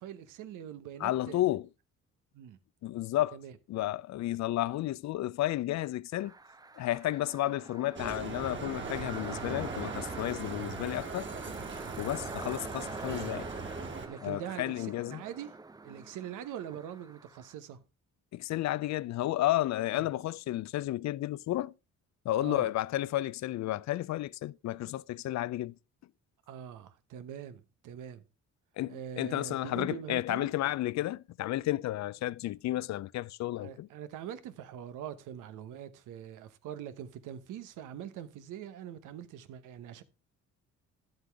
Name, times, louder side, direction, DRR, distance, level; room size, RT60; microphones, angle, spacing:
voice 1, 0.0-1.4 2.3-2.6 3.3-3.5 14.1-15.5 15.8-17.8 19.9-20.0 22.4-22.7 26.5-28.2 28.9-30.5 33.6-40.0, right 10 dB, 90° right, 1.0 m, -43 dB
voice 2, 1.0-1.7 2.8-3.4 3.7-6.3 6.7-11.3 12.0-13.5 14.2-15.2 18.3-21.7 22.2-25.8 28.8-33.9, left 15 dB, 65° left, 0.5 m, -32 dB
sound 1, 6.2-17.5, right 3 dB, 15° right, 0.5 m, -45 dB
Bicycle, 8.0-14.1, right 4 dB, 40° right, 2.3 m, -40 dB
10.5 x 7.9 x 3.4 m
cardioid pair, 90°, 30 cm